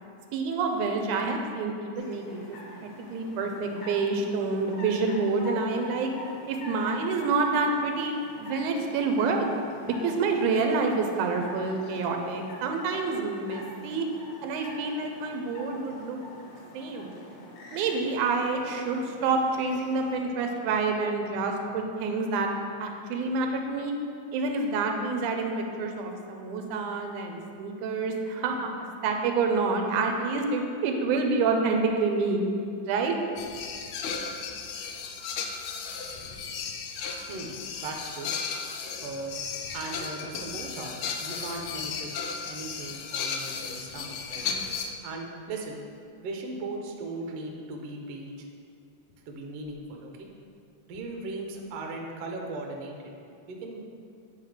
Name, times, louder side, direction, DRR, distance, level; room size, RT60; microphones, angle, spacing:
voice 1, 0.3-6.1 6.5-8.1 8.4-9.5 9.8-14.1 14.4-16.2 16.7-17.1 17.7-22.5 22.8-23.9 24.3-32.4 32.8-33.2, right 4 dB, 90° right, 3 dB, 2.1 m, -28 dB
sound 1, 1.9-20.1, left 1 dB, 60° left, 1.9 m, -45 dB
sound 2, 33.4-45.0 49.1-49.2 49.7-49.8 50.9-51.0, left 6 dB, 80° left, 1.8 m, -35 dB
voice 2, 37.8-38.3 39.0-39.3 39.7-44.5 45.0-45.8 46.2-48.3 49.3-50.3 50.9-53.1 53.5-53.8, right 2 dB, 70° right, 1 dB, 1.7 m, -38 dB
8.7 x 4.1 x 4.9 m, 2.4 s
omnidirectional pair, 3.4 m